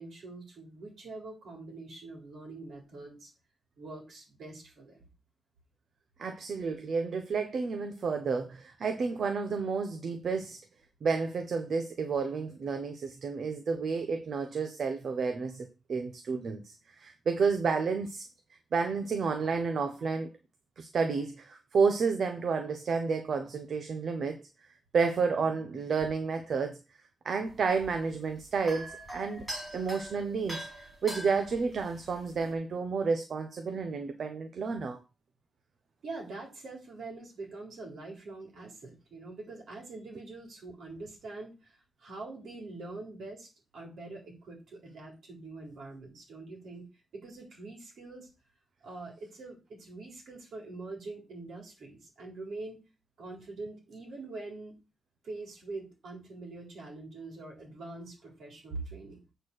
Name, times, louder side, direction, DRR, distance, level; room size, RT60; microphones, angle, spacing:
voice 1, 0.0-3.3 3.8-5.1 36.0-46.8 47.1-48.3 48.8-52.8 53.2-54.7 55.2-59.2, right 3 dB, 60° right, 4.1 m, -44 dB
voice 2, 6.2-10.6 11.0-18.2 18.7-20.3 20.8-24.4 24.9-26.8 27.2-29.4 29.7-35.0, right 5 dB, 45° right, 1.0 m, -31 dB
sound 1, 27.4-32.5, right 1 dB, 10° right, 4.0 m, -43 dB
8.1 x 4.4 x 6.7 m
wide cardioid pair, 170°, 0 cm